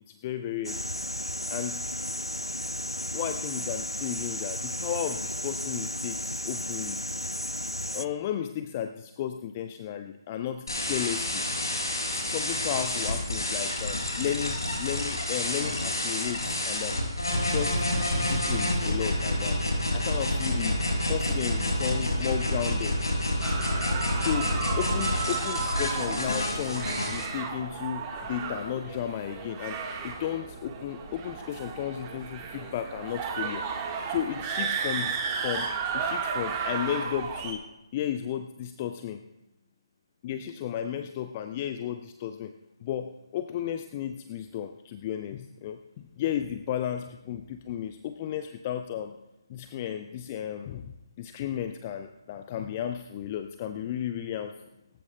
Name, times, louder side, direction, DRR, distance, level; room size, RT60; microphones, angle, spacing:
voice 1, 0.1-0.9 1.5-1.9 3.1-7.3 7.9-11.4 12.1-17.0 17.4-19.6 19.9-20.8 21.1-23.0 24.2-33.7 34.1-37.6 37.9-39.2 40.2-42.5 42.8-49.2 49.5-54.6, left 10 dB, 20° left, 9 dB, 0.4 m, -34 dB
sound 1, 0.6-8.1, equal, 90° left, 0.6 m, -34 dB
sound 2, 10.7-27.3, left 1 dB, 60° left, 5.3 m, -28 dB
sound 3, 23.4-37.5, right 5 dB, 15° right, 1.4 m, -34 dB
25.0 x 14.0 x 2.2 m, 0.98 s
figure-of-eight pair, 145°, 3 cm